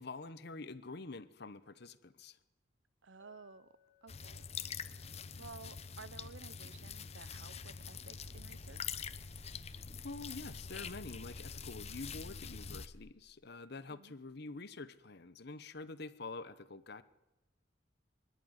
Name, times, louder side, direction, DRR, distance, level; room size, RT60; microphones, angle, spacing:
voice 1, 0.0-2.4 10.0-17.0, left 3 dB, 55° left, 13 dB, 1.0 m, -47 dB
voice 2, 3.0-3.7 4.0-4.5 5.3-9.0 13.9-14.1, right 4 dB, 70° right, 16 dB, 0.8 m, -54 dB
Chink clink, 3.2-7.6, left 7 dB, 15° left, 2.3 m, -74 dB
sound 1, 4.1-12.9, left 6 dB, 35° left, 0.7 m, -45 dB
sound 2, 8.1-13.1, left 1 dB, 80° left, 1.9 m, -55 dB
24.5 x 11.5 x 9.6 m, 1.0 s
head